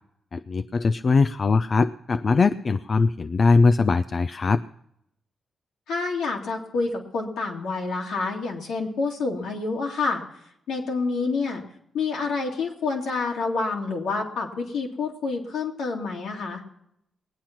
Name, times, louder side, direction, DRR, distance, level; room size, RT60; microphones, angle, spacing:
voice 1, 0.3-4.6, left 4 dB, 50° left, 10 dB, 0.4 m, -21 dB
voice 2, 5.9-10.2 10.7-11.6 11.9-16.6, left 4 dB, 80° left, -1 dB, 2.3 m, -28 dB
20.0 x 8.9 x 5.9 m, 0.76 s
supercardioid pair, 45°, 0 cm